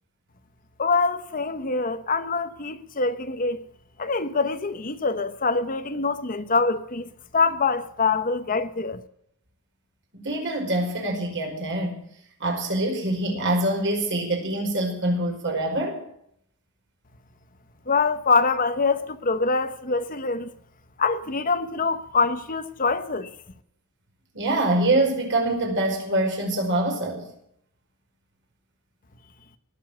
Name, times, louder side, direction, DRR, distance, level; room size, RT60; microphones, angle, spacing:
voice 1, 0.8-3.6 4.0-9.0 17.9-20.5 21.0-23.3, left 4 dB, 40° left, 1.0 m, -24 dB
voice 2, 10.1-12.0 12.4-16.0 24.3-27.3, right 1 dB, 55° right, 5.2 m, -25 dB
19.0 x 7.4 x 9.0 m
head